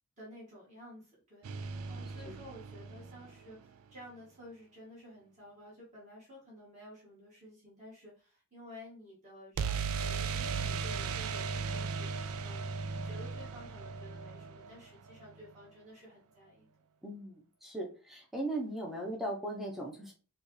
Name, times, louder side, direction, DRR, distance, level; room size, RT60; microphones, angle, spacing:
voice 1, 0.2-12.7 13.0-16.7, left 1 dB, 30° right, -7 dB, 2.0 m, -52 dB
sound 1, 1.4-3.5 9.6-15.3, right 5 dB, 75° right, 0.4 m, -37 dB
voice 2, 17.0-20.1, right 1 dB, ahead, -2 dB, 0.8 m, -38 dB
5.0 x 2.4 x 3.2 m, 0.36 s
head